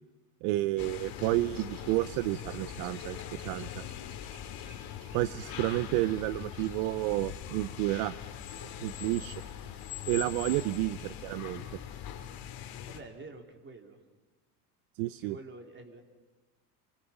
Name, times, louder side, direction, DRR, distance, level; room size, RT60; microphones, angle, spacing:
voice 1, 0.4-3.8 5.1-8.1 8.8-9.4 10.1-11.8 15.0-15.4, right 18 dB, 65° right, 15 dB, 0.7 m, -31 dB
sound 1, 0.8-13.0, left 10 dB, 50° left, 2.7 m, -42 dB
sound 2, 1.5-13.1, right 6 dB, 80° right, 4.2 m, -59 dB
voice 2, 12.9-14.0 15.1-16.0, right 3 dB, 25° right, 3 dB, 3.8 m, -48 dB
29.0 x 24.5 x 5.9 m, 1.2 s
supercardioid pair, 110°, 45 cm